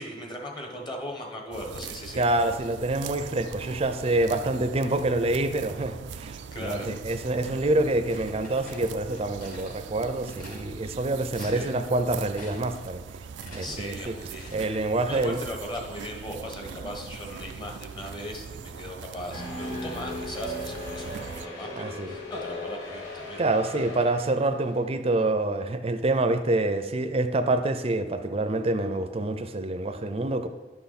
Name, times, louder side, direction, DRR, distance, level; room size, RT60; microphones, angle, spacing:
voice 1, 0.0-2.2 6.5-6.9 10.4-10.5 11.3-11.7 13.6-14.7 15.1-23.4, equal, 25° left, 2 dB, 1.3 m, -38 dB
sound 1, 1.5-21.5, right 6 dB, 85° right, 0.4 m, -41 dB
voice 2, 2.2-13.0 13.5-14.1 14.5-15.4 21.8-22.1 23.4-30.5, right 2 dB, 35° right, 8 dB, 0.6 m, -26 dB
sound 2, 8.1-9.7 10.3-10.6 11.0-11.1 11.3-12.0 12.3-12.8 13.1-14.8, left 1 dB, 50° left, 2.7 m, -46 dB
sound 3, 19.3-24.6, left 1 dB, 75° left, 1.9 m, -37 dB
11.0 x 5.8 x 4.2 m, 1.2 s
head